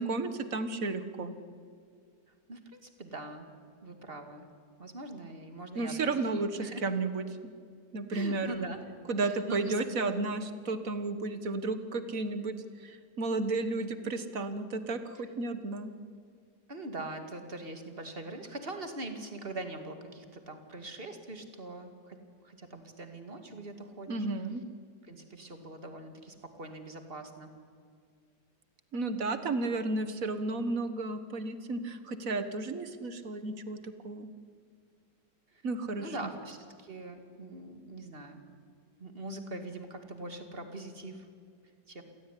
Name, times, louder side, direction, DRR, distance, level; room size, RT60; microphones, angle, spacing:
voice 1, 0.0-1.3 5.7-7.2 7.9-8.7 9.1-12.5 12.8-15.9 24.1-24.6 28.9-34.3 35.6-36.3, right 3 dB, 55° right, 10 dB, 1.8 m, -33 dB
voice 2, 2.5-3.5 3.8-4.5 4.8-6.3 6.6-6.8 8.1-8.9 9.2-9.8 16.7-22.2 22.4-24.3 25.1-27.5 35.5-35.6 35.9-38.4 39.0-41.3 41.9-42.0, right 2 dB, 30° right, 6 dB, 2.5 m, -42 dB
28.0 x 17.0 x 10.0 m, 2.2 s
omnidirectional pair, 1.9 m